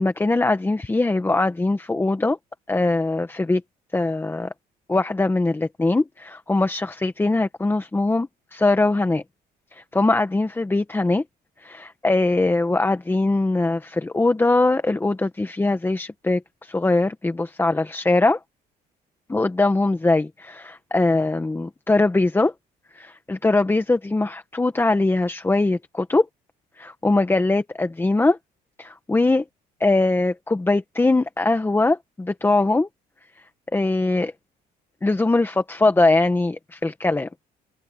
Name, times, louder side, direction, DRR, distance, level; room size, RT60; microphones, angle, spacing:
voice 1, 0.0-2.4 2.7-3.6 3.9-4.5 4.9-9.2 9.7-11.2 11.6-18.4 19.3-22.5 22.9-26.3 26.8-28.4 28.8-29.4 29.8-32.9 33.7-34.3 35.0-37.3, left 2 dB, 15° left, 1.4 m, -21 dB
cardioid pair, 110°, 17 cm